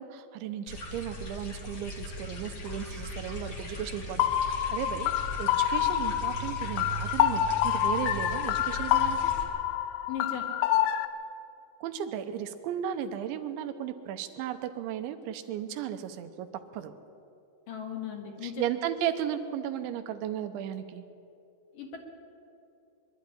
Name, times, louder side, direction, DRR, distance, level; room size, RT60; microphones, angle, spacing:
voice 1, 0.0-4.2 4.7-9.3 11.8-16.5 16.7-16.9 18.4-21.0, right 10 dB, 90° right, 9 dB, 3.3 m, -35 dB
sound 1, 0.7-9.4, equal, 40° left, 1.6 m, -39 dB
sound 2, 4.2-11.1, left 11 dB, 80° left, 2.4 m, -27 dB
voice 2, 10.1-10.5 17.7-18.6 21.7-22.0, left 8 dB, 55° left, 2 dB, 2.9 m, -37 dB
23.0 x 12.0 x 10.0 m, 2.7 s
omnidirectional pair, 5.2 m